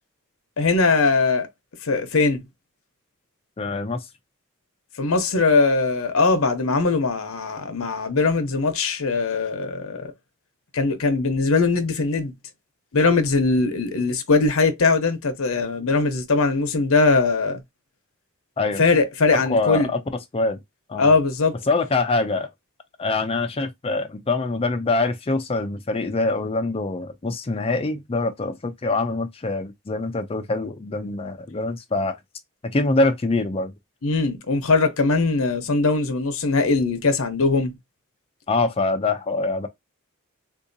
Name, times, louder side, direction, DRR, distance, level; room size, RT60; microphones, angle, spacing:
voice 1, 0.6-1.5 1.8-2.4 5.0-10.1 10.7-12.3 12.9-17.6 18.8-19.9 21.0-21.6 34.0-37.8, left 3 dB, 70° left, 0.7 m, -21 dB
voice 2, 3.6-4.0 18.6-18.8 19.3-20.0 20.3-20.6 20.9-21.1 21.7-22.5 23.0-32.2 32.7-33.7 38.5-39.7, left 3 dB, 25° left, 0.4 m, -24 dB
3.6 x 2.7 x 2.6 m
head